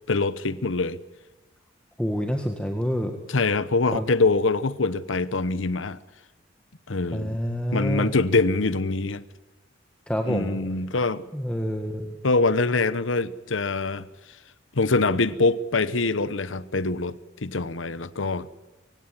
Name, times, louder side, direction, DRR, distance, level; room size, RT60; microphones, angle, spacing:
voice 1, 0.1-1.0 3.3-6.0 6.9-7.3 7.7-9.2 10.3-11.2 12.2-14.1 14.7-18.5, left 3 dB, 85° left, 1.0 m, -24 dB
voice 2, 2.0-3.1 3.9-4.1 7.1-8.1 10.1-10.6 11.3-12.2, equal, 5° left, 1.8 m, -27 dB
24.0 x 17.0 x 9.9 m
head